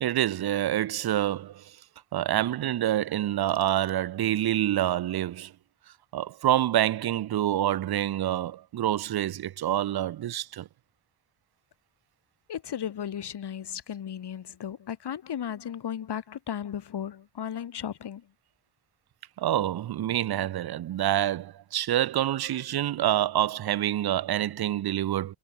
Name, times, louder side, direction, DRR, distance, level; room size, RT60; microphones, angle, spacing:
voice 1, 0.0-1.7 2.1-5.5 6.1-10.7 19.4-25.4, right 12 dB, 50° right, 0.6 m, -27 dB
sound 1, 3.0-4.5, right 5 dB, 35° right, 4.8 m, -62 dB
voice 2, 12.5-18.3, left 9 dB, 55° left, 1.8 m, -35 dB
cardioid pair, 110°, 47 cm